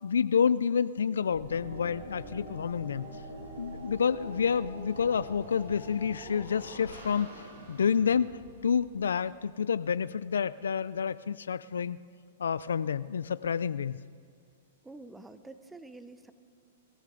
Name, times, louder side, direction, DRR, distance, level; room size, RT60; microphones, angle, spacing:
voice 1, 0.0-3.2 3.6-12.0 12.4-14.0, left 7 dB, 90° left, 15 dB, 0.3 m, -29 dB
sound 1, 1.3-9.4, right 1 dB, 80° right, 5.4 m, -45 dB
voice 2, 14.8-16.3, right 2 dB, 5° right, 11 dB, 0.8 m, -47 dB
25.5 x 13.5 x 3.8 m, 2.1 s
hypercardioid pair, 130°, 0 cm